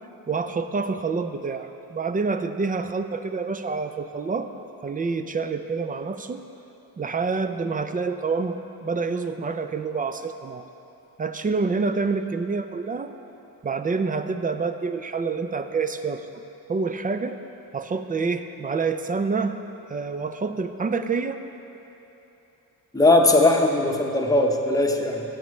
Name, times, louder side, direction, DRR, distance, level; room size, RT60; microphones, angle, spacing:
voice 1, 0.3-4.5 4.8-6.4 7.0-10.6 11.2-13.1 13.6-16.4 16.7-17.4 17.7-19.6 19.9-21.4, right 4 dB, 25° right, 9 dB, 0.4 m, -27 dB
voice 2, 22.9-25.2, left 2 dB, 10° left, 2 dB, 0.8 m, -19 dB
13.5 x 8.7 x 3.2 m, 2.9 s
cardioid pair, 100°, 37 cm